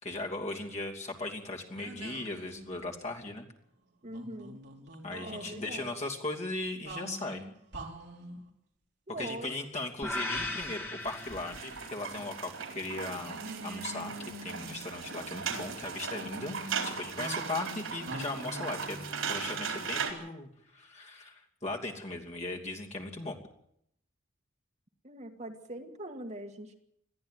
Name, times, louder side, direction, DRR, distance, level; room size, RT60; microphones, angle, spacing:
voice 1, 0.0-3.5 5.0-7.4 9.1-23.4, left 2 dB, 30° left, 1 dB, 2.9 m, -38 dB
sound 1, 1.8-3.1 4.0-5.5 6.9-8.4 10.3-11.8 12.1-12.2 13.2-15.3 16.1-19.9, right 1 dB, 55° right, 3.5 m, -45 dB
voice 2, 4.0-4.6 5.2-5.9 9.1-9.6 25.0-26.8, right 1 dB, 35° right, 4 dB, 1.8 m, -42 dB
sound 2, 10.0-12.2, left 1 dB, 10° left, 2.0 m, -37 dB
sound 3, 11.0-20.1, right 6 dB, 80° right, 4.2 m, -38 dB
21.5 x 14.0 x 9.4 m, 0.74 s
head